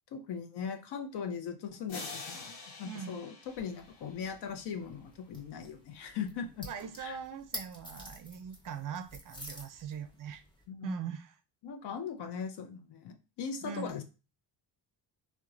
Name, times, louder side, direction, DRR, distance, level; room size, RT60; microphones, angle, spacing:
voice 1, 0.1-6.7 7.0-7.2 10.7-11.1 11.6-14.0, left 6 dB, 60° left, 6 dB, 0.6 m, -39 dB
sound 1, 1.9-4.7, left 4 dB, 80° left, 1.0 m, -46 dB
voice 2, 2.8-3.2 6.6-10.4 10.8-11.3 13.6-13.9, right 7 dB, 45° right, 9 dB, 0.4 m, -41 dB
sound 2, 3.4-10.6, equal, 10° left, 0.9 m, -50 dB
2.9 x 2.2 x 2.4 m, 0.31 s
cardioid pair, 80°, 45 cm